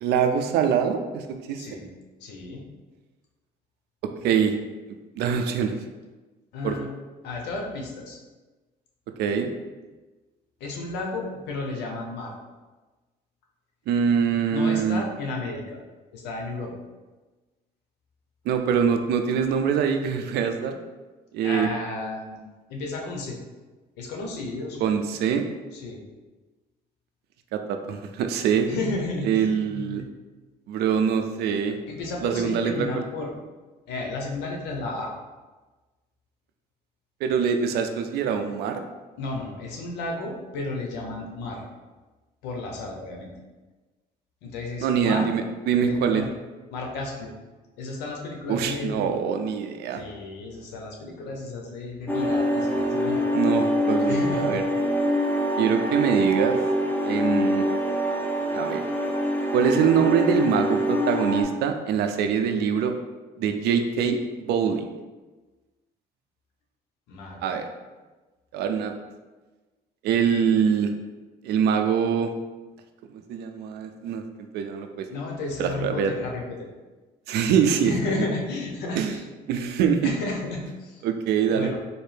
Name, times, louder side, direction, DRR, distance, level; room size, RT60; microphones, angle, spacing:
voice 1, 0.0-1.6 4.2-4.5 5.2-5.7 6.6-6.7 9.2-9.5 13.9-15.0 18.5-20.8 21.3-21.7 24.8-25.5 27.5-28.7 29.2-30.0 30.7-31.8 32.2-33.1 37.2-38.8 44.8-46.2 48.5-50.0 53.3-54.6 55.6-56.6 57.0-57.6 58.5-58.8 59.5-62.9 63.4-64.9 67.4-67.6 68.5-68.9 70.0-70.9 71.4-72.3 73.3-74.2 74.5-75.0 75.6-76.1 77.3-77.9 78.2-78.3 79.0-79.1 79.5-80.2 81.0-81.7, right 7 dB, 75° right, 6 dB, 0.5 m, -24 dB
voice 2, 2.2-2.7 6.5-6.9 7.2-8.2 10.6-12.3 14.4-15.8 16.1-16.7 21.4-22.4 22.7-23.4 24.0-24.9 25.7-26.0 28.7-30.0 31.9-33.3 33.9-35.1 39.2-41.6 42.4-43.3 44.4-45.3 45.9-46.3 46.7-47.3 47.8-49.1 49.9-53.2 54.1-54.6 67.1-67.5 75.1-76.7 77.8-79.2 80.0-81.0 81.5-81.8, left 2 dB, 90° left, 0 dB, 0.8 m, -33 dB
sound 1, 52.1-61.4, equal, 10° left, 0.5 m, -25 dB
4.2 x 2.7 x 3.4 m, 1.2 s
cardioid pair, 110°, 17 cm